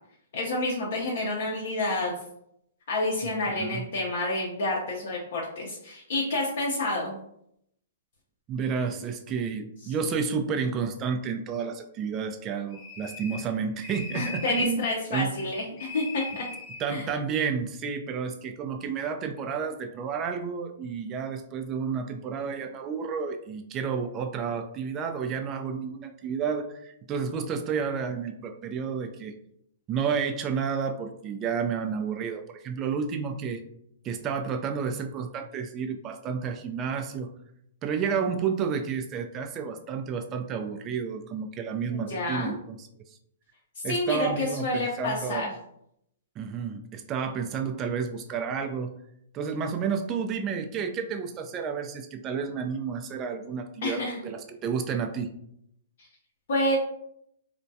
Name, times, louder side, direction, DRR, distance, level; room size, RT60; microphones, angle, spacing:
voice 1, 0.3-2.1 2.9-7.1 14.1-16.4 16.9-17.1 41.9-42.5 43.8-45.5 53.8-54.2 56.5-56.8, left 2 dB, 65° left, -4 dB, 0.6 m, -29 dB
voice 2, 3.2-3.9 8.5-15.3 16.8-29.3 29.9-33.6 34.0-37.3 37.8-42.9 43.8-45.5 46.4-48.9 49.3-55.3, right 6 dB, 30° right, 6 dB, 0.3 m, -31 dB
sound 1, 12.7-13.5 13.8-14.8 15.8-16.8, left 4 dB, 30° left, 0.7 m, -39 dB
2.2 x 2.1 x 2.7 m, 0.74 s
hypercardioid pair, 130°, 0 cm